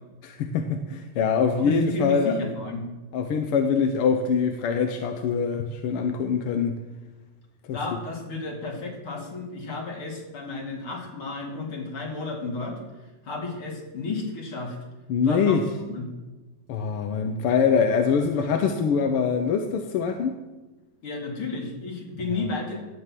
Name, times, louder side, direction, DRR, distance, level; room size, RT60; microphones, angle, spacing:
voice 1, 0.2-2.4 3.1-6.8 7.7-7.8 15.1-15.6 16.7-20.3, left 6 dB, 65° left, 5 dB, 1.4 m, -24 dB
voice 2, 1.6-2.9 7.7-12.8 13.2-14.8 15.2-15.6 15.9-16.1 21.0-22.8, left 3 dB, 45° left, 0 dB, 3.2 m, -32 dB
16.0 x 6.0 x 7.6 m, 1.2 s
omnidirectional pair, 3.4 m